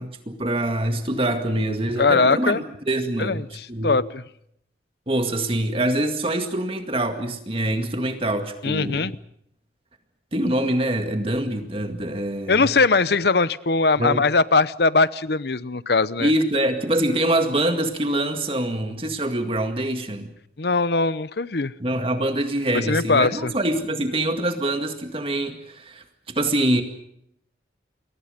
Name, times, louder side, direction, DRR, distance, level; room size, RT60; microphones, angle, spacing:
voice 1, 0.0-4.0 5.1-9.1 10.3-12.6 14.0-14.2 16.2-20.3 21.8-26.8, right 1 dB, 30° right, 6 dB, 2.1 m, -25 dB
voice 2, 2.0-2.6 3.2-4.2 8.6-9.2 12.5-16.3 20.6-21.7 22.7-23.5, left 3 dB, 60° left, 17 dB, 0.8 m, -21 dB
29.0 x 23.0 x 5.2 m, 0.72 s
head